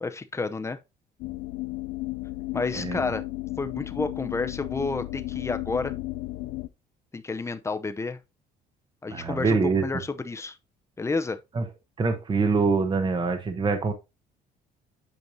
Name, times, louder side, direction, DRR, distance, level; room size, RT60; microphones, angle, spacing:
voice 1, 0.0-0.8 2.5-3.2 3.6-5.9 7.1-8.2 9.0-10.6 11.0-11.4, left 3 dB, 15° left, 0.7 m, -30 dB
sound 1, 1.2-6.7, left 18 dB, 85° left, 0.6 m, -34 dB
voice 2, 9.1-9.9 11.5-11.6 12.0-13.9, right 4 dB, 30° right, 1.0 m, -24 dB
8.2 x 5.3 x 2.8 m
cardioid pair, 110°, 17 cm